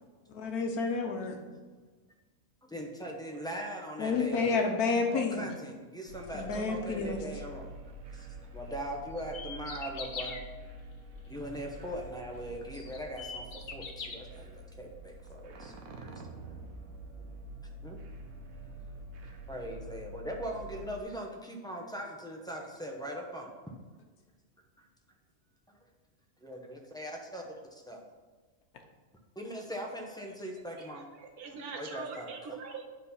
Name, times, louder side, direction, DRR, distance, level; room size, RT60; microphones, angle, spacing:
voice 1, 0.3-1.4 4.0-5.5 6.3-7.2, left 4 dB, 90° left, 4 dB, 1.4 m, -30 dB
voice 2, 2.6-4.7 5.1-7.7 8.1-10.4 11.3-16.2 17.2-17.3 17.8-18.0 19.5-23.5 25.7-25.8 26.4-28.0 29.3-31.1 31.7-32.3, equal, 5° left, 0 dB, 0.7 m, -40 dB
sound 1, 6.1-21.0, right 2 dB, 70° right, 1.2 m, -47 dB
sound 2, 9.2-10.4 12.1-12.2 12.7-14.2, left 5 dB, 45° left, 0.7 m, -41 dB
voice 3, 30.8-32.8, right 5 dB, 90° right, 3 dB, 1.5 m, -43 dB
8.4 x 4.1 x 5.6 m, 1.3 s
omnidirectional pair, 1.6 m